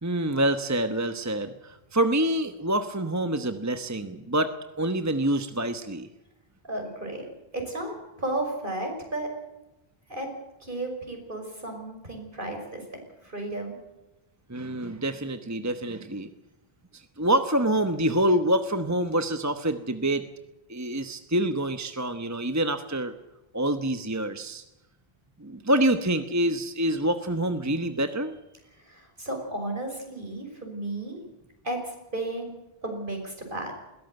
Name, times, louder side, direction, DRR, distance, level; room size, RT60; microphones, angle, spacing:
voice 1, 0.0-4.5 4.8-6.1 14.5-16.3 16.9-20.3 20.7-23.1 23.5-24.6 25.4-28.4, right 1 dB, 15° right, 9 dB, 1.1 m, -26 dB
voice 2, 6.6-7.2 7.5-9.3 10.1-10.3 10.6-13.7 28.8-31.2 31.6-32.5 32.8-33.7, right 1 dB, 55° right, 3 dB, 6.2 m, -33 dB
21.0 x 17.5 x 8.0 m, 0.97 s
omnidirectional pair, 1.0 m